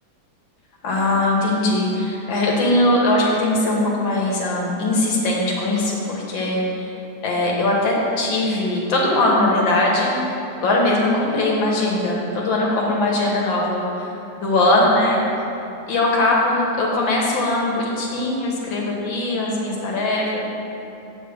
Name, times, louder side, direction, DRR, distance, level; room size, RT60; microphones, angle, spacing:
voice 1, 0.8-6.9 7.2-15.2 15.9-20.4, left 2 dB, 75° left, -2 dB, 1.9 m, -20 dB
8.2 x 3.5 x 6.3 m, 2.8 s
omnidirectional pair, 2.2 m